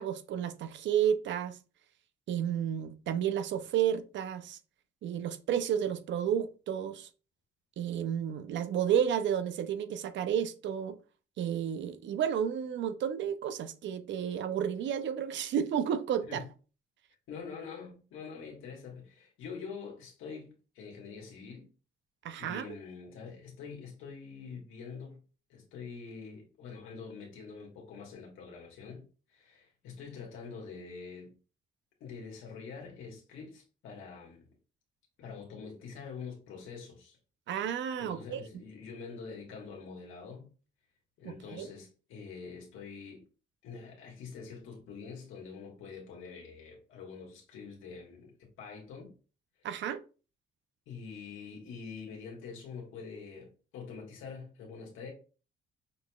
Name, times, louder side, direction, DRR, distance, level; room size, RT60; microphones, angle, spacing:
voice 1, 0.0-1.6 2.3-4.6 5.0-7.1 7.8-11.0 11.4-16.4 22.2-22.7 37.5-38.4 41.2-41.7 49.6-50.0, right 9 dB, 70° right, 0.6 m, -31 dB
voice 2, 17.3-21.7 22.4-25.2 25.5-29.0 29.3-31.3 32.0-34.5 35.2-37.2 38.0-40.5 41.2-43.2 43.6-49.1 50.9-55.1, left 5 dB, 90° left, 1.5 m, -45 dB
6.1 x 2.9 x 2.3 m
cardioid pair, 90°, 20 cm